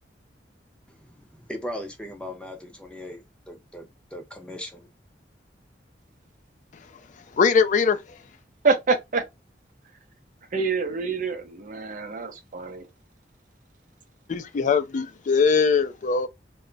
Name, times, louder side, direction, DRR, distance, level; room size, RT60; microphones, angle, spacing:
voice 1, 0.9-4.9, left 1 dB, 5° left, 0.7 m, -38 dB
voice 2, 7.3-8.2 14.3-16.3, left 5 dB, 45° left, 0.4 m, -21 dB
voice 3, 8.6-9.2 10.5-12.8, right 4 dB, 50° right, 0.6 m, -26 dB
2.2 x 2.0 x 3.8 m
head